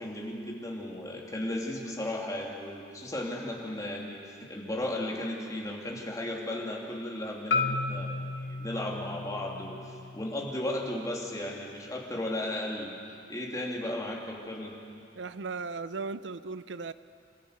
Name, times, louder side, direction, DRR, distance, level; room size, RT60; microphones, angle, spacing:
voice 1, 0.0-12.9 13.3-14.8, left 1 dB, 20° left, -2 dB, 3.0 m, -35 dB
Marimba xylophone, 7.5-11.7, left 3 dB, 70° left, 1.1 m, -34 dB
voice 2, 15.2-16.9, right 4 dB, 75° right, 14 dB, 0.5 m, -37 dB
27.5 x 13.5 x 8.2 m, 2.5 s
head